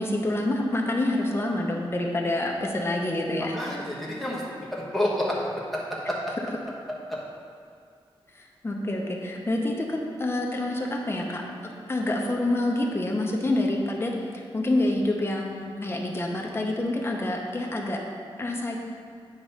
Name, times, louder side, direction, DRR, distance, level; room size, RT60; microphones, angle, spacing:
voice 1, 0.0-3.6 8.3-11.4 11.9-18.0 18.4-18.8, left 1 dB, 25° left, 0 dB, 0.8 m, -27 dB
voice 2, 3.5-4.4 4.7-5.8 6.1-6.2, left 1 dB, ahead, -5 dB, 1.1 m, -28 dB
8.8 x 3.0 x 5.5 m, 2.2 s
wide cardioid pair, 160°, 10 cm